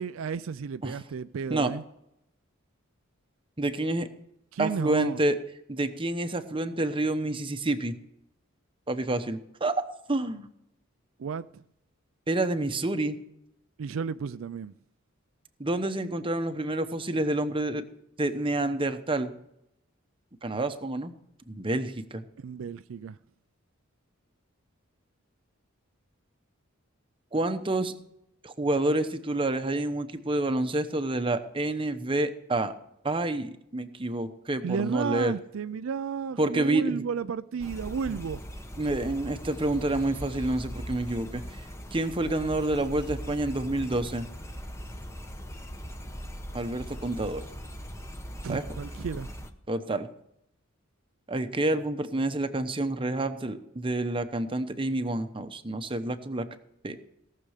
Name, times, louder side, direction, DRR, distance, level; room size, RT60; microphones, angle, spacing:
voice 1, 0.0-1.8 4.5-5.2 11.2-11.6 13.8-14.7 22.4-23.2 34.6-38.4 48.4-49.3, right 6 dB, 75° right, 0.4 m, -33 dB
voice 2, 3.6-4.1 4.6-5.4 5.7-8.0 8.9-9.7 10.1-10.5 12.3-13.2 15.6-17.8 18.2-19.3 20.4-21.1 21.5-22.2 27.3-27.9 28.4-32.7 33.0-35.3 36.4-37.0 38.1-38.2 38.8-41.4 41.9-44.3 46.5-47.4 48.5-48.6 49.7-50.1 51.3-56.5 56.8-57.0, right 2 dB, 25° right, 0.9 m, -28 dB
sound 1, 37.6-49.5, equal, 15° left, 1.0 m, -40 dB
17.5 x 6.7 x 6.6 m
head